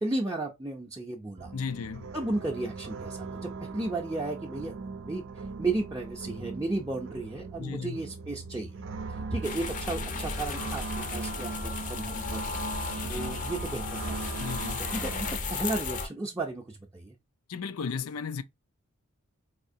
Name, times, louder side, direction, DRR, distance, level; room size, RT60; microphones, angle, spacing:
voice 1, 0.0-1.5 2.1-4.7 5.0-8.8 9.1-10.8 11.1-12.6 13.1-14.3 14.9-17.1, right 2 dB, 15° right, 0.6 m, -34 dB
sound 1, 1.4-15.4, right 4 dB, 60° right, 0.5 m, -39 dB
voice 2, 1.5-2.1 7.6-8.0 13.1-13.3 14.4-14.9 17.5-18.4, left 6 dB, 80° left, 0.4 m, -35 dB
sound 2, 9.4-16.1, left 4 dB, 35° left, 0.6 m, -35 dB
4.3 x 2.8 x 2.6 m
head